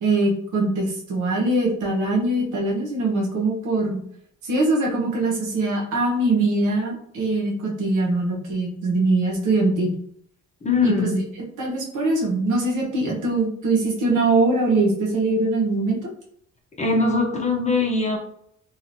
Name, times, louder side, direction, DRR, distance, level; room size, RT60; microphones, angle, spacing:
voice 1, 0.0-4.0 4.4-9.9 10.8-11.2 11.6-16.1, right 2 dB, 80° right, -2 dB, 1.0 m, -22 dB
voice 2, 10.6-11.2 16.8-18.2, left 3 dB, 25° left, 0 dB, 0.7 m, -21 dB
3.0 x 2.5 x 2.6 m, 0.67 s
cardioid pair, 90°, 30 cm